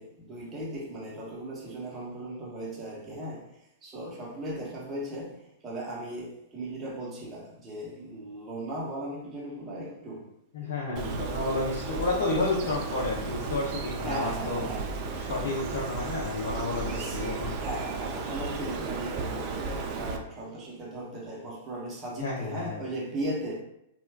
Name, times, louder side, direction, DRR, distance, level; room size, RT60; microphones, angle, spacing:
voice 1, 0.0-3.5 3.8-10.3 10.6-11.7 14.0-14.9 16.9-17.2 17.6-23.6, right 1 dB, 20° right, -5 dB, 0.7 m, -37 dB
voice 2, 10.5-14.6 15.2-17.6 22.2-22.8, left 3 dB, 65° left, -4 dB, 0.6 m, -31 dB
Bird, 11.0-20.2, right 4 dB, 40° right, 0.4 m, -34 dB
3.1 x 2.2 x 2.2 m, 0.81 s
figure-of-eight pair, 105°, 0 cm